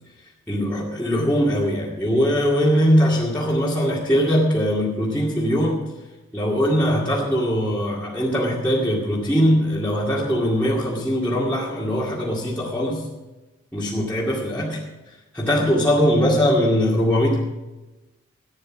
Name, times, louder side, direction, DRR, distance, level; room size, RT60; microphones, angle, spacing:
voice 1, 0.5-5.8 6.3-13.1 13.7-14.8 15.3-17.4, equal, 5° left, -8 dB, 2.2 m, -21 dB
15.5 x 9.7 x 6.1 m, 1.1 s
head